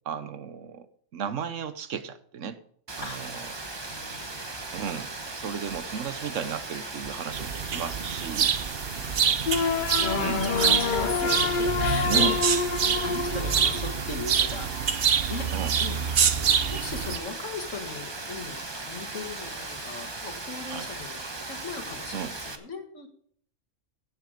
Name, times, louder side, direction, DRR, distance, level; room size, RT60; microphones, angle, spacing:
voice 1, 0.1-0.9 1.1-2.6 3.0-3.4 4.7-8.5 10.2-10.4 12.0-12.4 15.5-15.8 20.7-20.9 22.1-22.4, right 7 dB, 75° right, 13 dB, 1.2 m, -34 dB
Rain, 2.9-22.6, right 2 dB, 25° right, 1.0 m, -38 dB
voice 2, 3.7-4.4 6.4-6.5 9.2-9.5 10.0-12.6 13.0-15.0 15.3-15.5 15.8-23.1, left 4 dB, 75° left, 4 dB, 2.3 m, -38 dB
sound 1, 7.3-17.2, right 7 dB, 55° right, 0.9 m, -26 dB
sound 2, 9.5-14.5, left 5 dB, 45° left, 0.7 m, -28 dB
16.5 x 7.2 x 5.1 m, 0.63 s
omnidirectional pair, 1.3 m